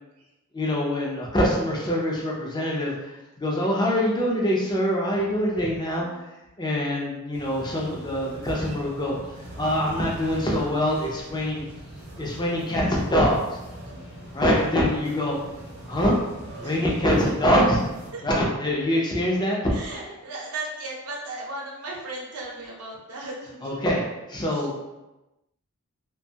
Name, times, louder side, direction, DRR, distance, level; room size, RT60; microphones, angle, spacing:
voice 1, 0.5-6.3 6.6-9.1 9.6-11.6 12.2-13.6 14.3-15.4 15.9-16.2 16.6-17.8 18.2-20.2 23.6-24.0 24.3-24.8, equal, 20° left, -3 dB, 0.5 m, -24 dB
sound 1, 7.3-18.1, right 1 dB, 45° right, 0.6 m, -43 dB
sound 2, 7.5-18.4, left 1 dB, 60° left, 0.8 m, -46 dB
voice 2, 19.7-23.8 24.5-24.6, right 2 dB, 80° right, -3 dB, 0.7 m, -36 dB
2.6 x 2.2 x 2.7 m, 1.0 s
head